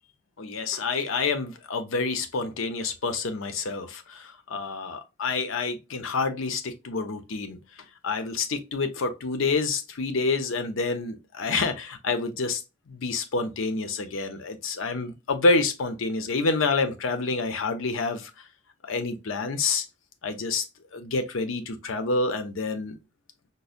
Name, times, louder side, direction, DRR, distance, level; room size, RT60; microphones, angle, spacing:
voice 1, 0.4-7.6 8.0-12.6 12.9-18.3 18.8-19.8 20.2-20.7 20.9-23.0, left 3 dB, 70° left, 0.6 m, -28 dB
5.2 x 2.1 x 2.4 m
head